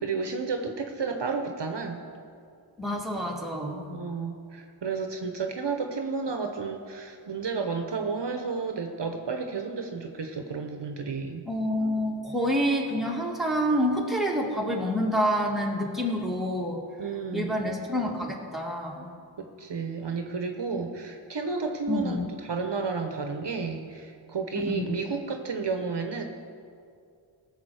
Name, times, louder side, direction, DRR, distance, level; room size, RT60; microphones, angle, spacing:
voice 1, 0.0-2.1 3.9-11.4 17.0-17.5 19.4-26.2, right 4 dB, 60° right, 5 dB, 1.0 m, -32 dB
voice 2, 2.8-3.9 11.5-16.8 17.3-19.1 21.9-22.3 24.6-24.9, equal, ahead, -2 dB, 2.1 m, -28 dB
18.0 x 7.1 x 4.9 m, 2.3 s
wide cardioid pair, 65°, 48 cm